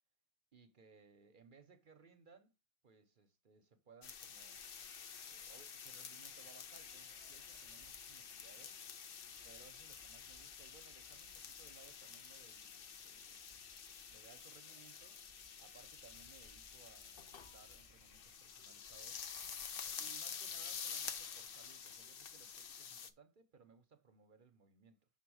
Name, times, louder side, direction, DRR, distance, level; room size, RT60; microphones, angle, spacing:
voice 1, 0.5-2.5 2.8-4.7 5.3-8.8 9.4-13.4 14.1-15.2 15.6-19.2 19.9-25.1, right 5 dB, 55° right, 0.9 m, -64 dB
sound 1, 4.0-23.1, left 7 dB, 60° left, 0.9 m, -49 dB
sound 2, 6.3-22.7, right 1 dB, 35° left, 2.5 m, -71 dB
6.1 x 4.0 x 6.2 m
omnidirectional pair, 1.1 m